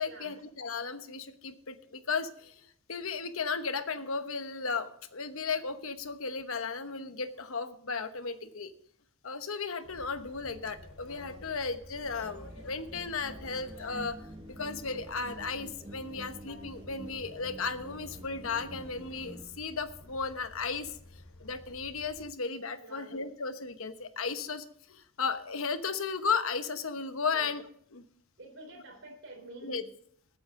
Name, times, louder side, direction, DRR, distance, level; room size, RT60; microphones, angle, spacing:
voice 1, 0.0-8.7 9.2-21.0 21.4-27.6 27.9-28.0 29.6-29.8, left 5 dB, 70° left, 10 dB, 1.1 m, -35 dB
sound 1, 9.8-22.3, left 1 dB, 90° left, 3.9 m, -52 dB
sound 2, 12.0-19.4, right 1 dB, 25° right, 1.1 m, -48 dB
voice 2, 22.8-23.1 27.3-27.5 28.4-29.9, right 1 dB, 60° right, 1 dB, 3.7 m, -47 dB
19.0 x 8.8 x 3.8 m, 0.64 s
head